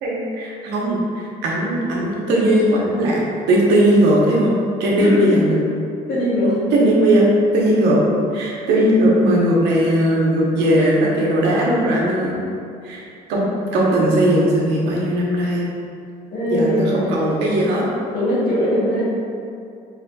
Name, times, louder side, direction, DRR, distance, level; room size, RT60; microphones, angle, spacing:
voice 1, 0.0-3.2 3.5-4.5 4.8-5.6 6.7-8.0 8.3-12.4 12.8-13.0 13.3-13.4 13.7-15.7 16.5-17.9, right 1 dB, 85° right, -4 dB, 0.9 m, -18 dB
voice 2, 5.0-5.4 6.1-6.7 8.8-8.9 16.3-17.2 18.1-19.0, left 1 dB, 60° left, -8 dB, 1.5 m, -21 dB
4.9 x 3.2 x 2.3 m, 2.4 s
cardioid pair, 110°, 17 cm